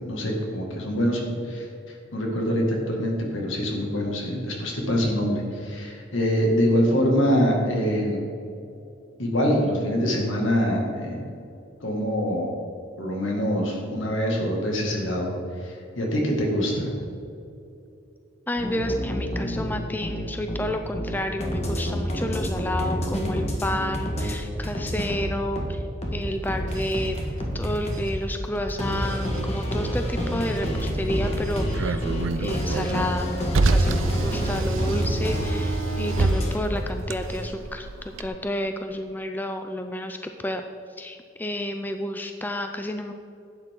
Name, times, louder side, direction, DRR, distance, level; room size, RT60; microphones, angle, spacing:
voice 1, 0.0-1.7 2.1-8.2 9.2-11.3 11.8-12.5 13.0-15.3 15.6-16.9, equal, 75° left, 0 dB, 2.2 m, -24 dB
voice 2, 18.5-25.8 26.1-27.2 27.5-32.0 32.4-40.6 41.0-43.1, left 1 dB, 10° left, 6 dB, 0.4 m, -30 dB
sound 1, 18.6-24.3 24.6-28.1 28.8-36.6, equal, 30° left, 1.6 m, -29 dB
sound 2, 26.2-37.5, equal, 35° right, 1.9 m, -38 dB
Car, 30.6-38.3, right 2 dB, 80° right, 0.5 m, -27 dB
11.5 x 8.9 x 3.8 m, 2.6 s
head